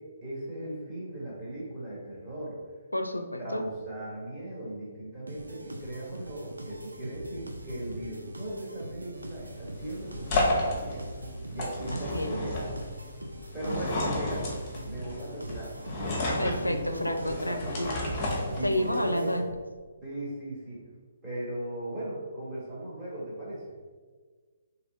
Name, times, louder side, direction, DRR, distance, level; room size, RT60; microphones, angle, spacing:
voice 1, 0.0-2.6 3.4-11.0 11.5-12.9 13.5-14.6 14.8-18.2 18.6-19.4 20.0-20.8 21.2-23.7, right 1 dB, 10° right, -8 dB, 1.3 m, -38 dB
voice 2, 2.9-3.6 11.9-12.3 13.6-14.0 16.4-17.9 18.6-19.4, left 1 dB, 85° left, 7 dB, 0.4 m, -30 dB
sound 1, 5.3-19.8, right 1 dB, 75° right, 0.5 m, -42 dB
sound 2, 9.2-19.0, left 1 dB, 20° left, 0.8 m, -32 dB
3.4 x 2.9 x 3.6 m, 1.5 s
figure-of-eight pair, 135°, 0 cm